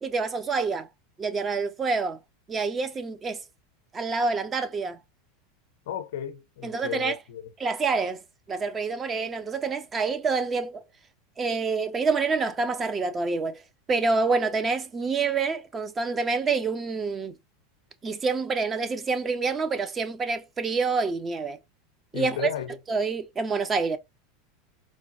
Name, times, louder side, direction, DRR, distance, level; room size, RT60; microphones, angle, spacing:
voice 1, 0.0-0.9 1.2-2.2 2.5-3.4 3.9-5.0 6.6-7.2 7.6-8.2 8.5-10.8 11.4-13.6 13.9-17.3 18.0-21.6 22.1-22.5 22.9-24.0, right 4 dB, 25° right, 0.6 m, -27 dB
voice 2, 5.9-7.5 22.1-22.7, left 11 dB, 65° left, 0.6 m, -34 dB
4.5 x 2.2 x 2.6 m
figure-of-eight pair, 85°, 0 cm